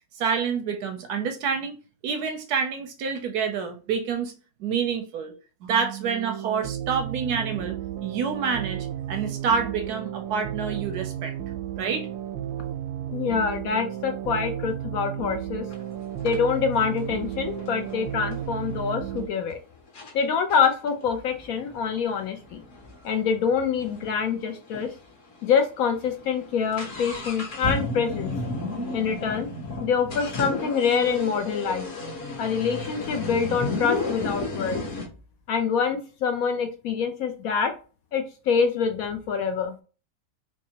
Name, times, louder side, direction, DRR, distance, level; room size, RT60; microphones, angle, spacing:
voice 1, 0.1-1.8 2.0-4.3 4.6-5.3 5.6-7.7 8.0-11.4 11.8-12.1, right 6 dB, 70° right, 1.0 m, -27 dB
sound 1, 5.7-19.3, right 11 dB, 90° right, 1.3 m, -33 dB
voice 2, 13.1-15.7 16.2-19.6 20.1-22.6 23.0-24.9 25.4-28.3 28.9-29.5 29.8-31.8 32.4-34.8 35.5-37.7 38.1-39.7, left 6 dB, 75° left, 0.8 m, -25 dB
sound 2, 15.7-15.8 16.2-18.9 19.5-19.6 19.9-20.1 20.5-24.2 24.5-24.6 24.7-24.8 25.5-25.6 25.9-35.1, left 2 dB, 45° left, 1.3 m, -33 dB
3.5 x 3.2 x 2.8 m
omnidirectional pair, 2.0 m